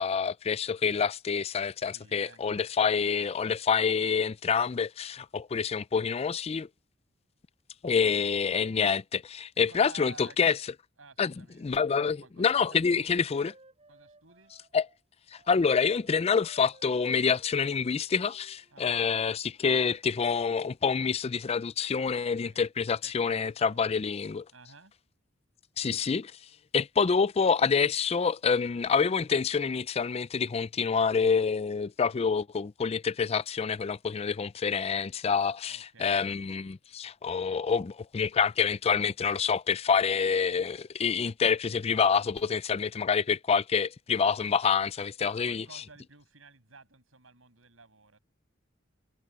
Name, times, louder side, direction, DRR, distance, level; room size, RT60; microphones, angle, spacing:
voice 1, 0.0-6.7 7.8-10.6 11.2-11.3 11.6-13.5 14.7-14.8 15.3-24.4 25.8-26.3 26.7-45.6, left 6 dB, 30° left, 0.4 m, -27 dB
voice 2, 1.9-2.4 9.7-10.7 11.0-13.4 13.9-14.5 18.7-19.1 22.5-22.6 23.0-24.0 24.5-24.9 35.7-36.3 45.2-48.2, right 3 dB, 85° right, 7.3 m, -53 dB
Wind instrument woodwind instrument, 11.3-15.0 15.3-19.0, right 2 dB, 30° right, 7.4 m, -59 dB
head